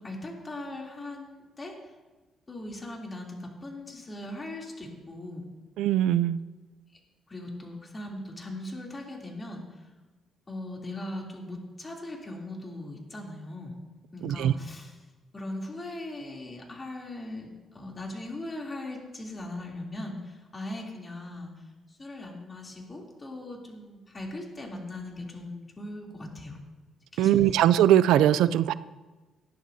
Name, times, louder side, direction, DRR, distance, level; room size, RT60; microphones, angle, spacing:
voice 1, 0.0-1.9 2.5-5.5 7.3-9.9 10.5-13.7 14.1-15.0 15.3-26.6 27.1-27.6, left 1 dB, 25° left, -1 dB, 3.1 m, -39 dB
voice 2, 5.8-6.4 14.2-14.5 27.2-28.7, right 11 dB, 90° right, 16 dB, 0.4 m, -21 dB
18.5 x 11.0 x 2.8 m, 1.2 s
cardioid pair, 90°, 0 cm